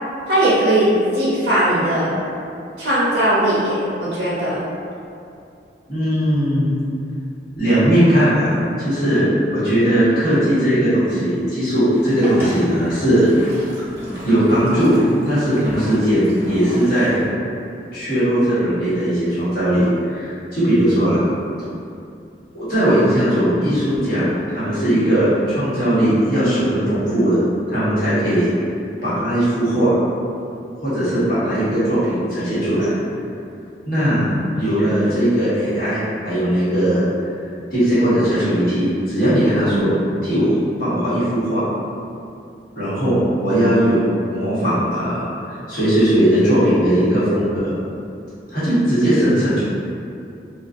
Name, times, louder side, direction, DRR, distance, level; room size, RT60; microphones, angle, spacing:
voice 1, 0.3-2.1 2.8-4.6, right 1 dB, 60° right, -10 dB, 0.6 m, -18 dB
voice 2, 5.9-6.7 7.6-9.2 9.5-13.2 14.2-14.9 15.3-17.3 17.9-21.2 22.5-27.4 27.7-28.5 29.0-30.0 30.8-32.9 33.8-34.3 34.6-37.1 37.7-40.0 40.2-41.6 42.7-45.3 45.7-47.7 48.5-49.6, equal, 55° left, -13 dB, 1.2 m, -18 dB
Boat Water vehicle, 11.9-17.2, equal, 15° right, 0.6 m, -32 dB
2.5 x 2.3 x 2.4 m, 2.5 s
head